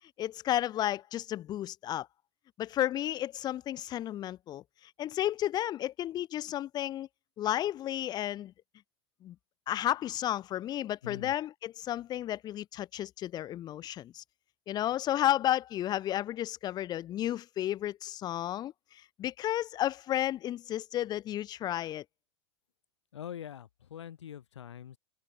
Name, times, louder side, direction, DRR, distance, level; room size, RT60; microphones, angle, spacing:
voice 1, 0.2-2.1 2.6-4.6 5.0-7.1 7.4-8.5 9.2-9.4 9.7-14.2 14.7-22.0, left 12 dB, 30° left, 0.4 m, -32 dB
voice 2, 11.0-11.3 23.1-25.0, left 9 dB, 80° left, 1.8 m, -44 dB
hypercardioid pair, 95°, 15 cm